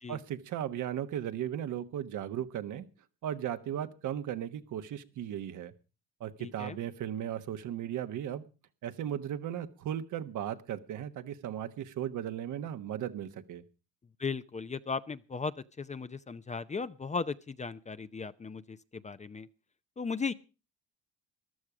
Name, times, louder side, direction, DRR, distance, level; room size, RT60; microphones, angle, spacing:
voice 1, 0.1-2.8 3.2-5.7 6.2-8.4 8.8-13.6, right 10 dB, 65° right, 9 dB, 1.3 m, -36 dB
voice 2, 6.4-6.8 14.2-19.5 20.0-20.3, left 4 dB, 20° left, 13 dB, 0.6 m, -37 dB
14.0 x 12.0 x 4.9 m, 0.34 s
supercardioid pair, 75°, 33 cm